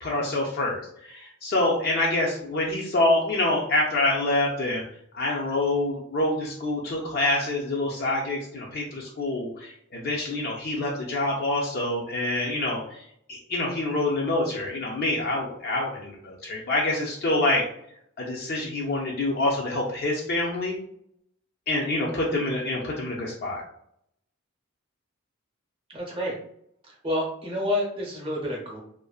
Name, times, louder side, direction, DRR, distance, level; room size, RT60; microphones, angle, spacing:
voice 1, 0.0-4.8 5.1-13.0 13.3-17.7 18.2-20.8 21.7-23.6, left 2 dB, 50° left, -2 dB, 0.4 m, -26 dB
voice 2, 25.9-26.4 26.8-28.8, left 1 dB, 25° right, -3 dB, 0.7 m, -29 dB
2.5 x 2.1 x 2.3 m, 0.70 s
head